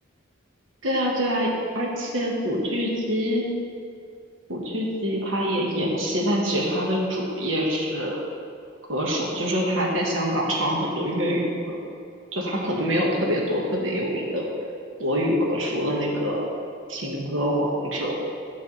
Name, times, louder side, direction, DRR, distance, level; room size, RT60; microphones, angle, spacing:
voice 1, 0.8-3.5 4.5-8.2 8.9-11.8 12.3-14.4 15.0-16.5 16.9-18.1, equal, 80° right, -2 dB, 1.3 m, -25 dB
9.6 x 3.4 x 6.8 m, 2.3 s
head